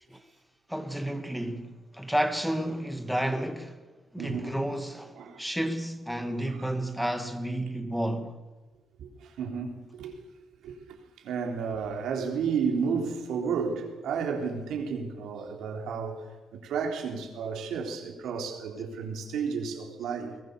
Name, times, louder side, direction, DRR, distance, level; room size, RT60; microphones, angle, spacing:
voice 1, 0.7-3.8 4.1-8.4, right 1 dB, ahead, 1.5 m, -31 dB
voice 2, 4.2-4.6 5.2-5.4 6.6-6.7 9.0-10.1 10.6-11.0 11.2-16.2 16.5-20.4, right 6 dB, 75° right, 3.7 m, -32 dB
21.5 x 20.0 x 6.9 m
cardioid pair, 160°, 0 cm